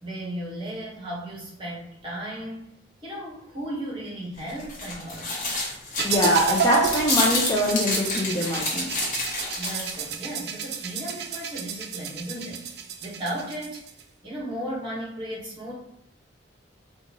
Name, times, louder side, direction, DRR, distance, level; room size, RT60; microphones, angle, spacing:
voice 1, 0.0-2.7 3.0-5.4 9.6-13.8 14.2-15.7, right 1 dB, 25° right, -5 dB, 1.2 m, -35 dB
sound 1, 4.4-10.1, left 2 dB, 45° left, 1.1 m, -29 dB
voice 2, 6.0-8.9, left 1 dB, 20° left, -3 dB, 0.5 m, -23 dB
sound 2, 6.0-14.0, right 6 dB, 60° right, 0.4 m, -30 dB
3.9 x 2.4 x 2.9 m, 0.77 s
head